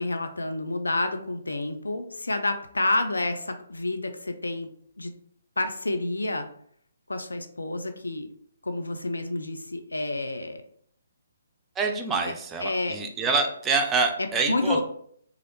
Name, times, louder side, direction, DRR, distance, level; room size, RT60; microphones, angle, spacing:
voice 1, 0.0-4.7 5.0-5.1 5.6-6.5 7.1-8.3 8.6-10.6 12.2-12.3 12.6-13.0 14.2-14.8, left 2 dB, 80° left, 7 dB, 0.4 m, -29 dB
voice 2, 11.8-14.8, right 4 dB, 15° right, 3 dB, 0.4 m, -26 dB
3.0 x 2.4 x 3.1 m, 0.64 s
figure-of-eight pair, 135°, 0 cm